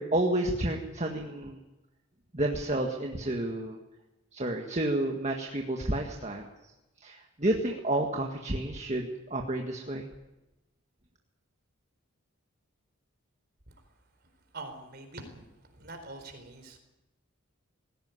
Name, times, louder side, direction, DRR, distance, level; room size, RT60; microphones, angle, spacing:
voice 1, 0.0-1.6 2.3-3.8 4.3-6.7 7.0-10.1, right 1 dB, 30° right, 2 dB, 1.7 m, -30 dB
voice 2, 14.5-15.4 15.7-16.8, right 2 dB, 45° right, 6 dB, 4.5 m, -44 dB
19.5 x 16.5 x 9.7 m, 1.0 s
head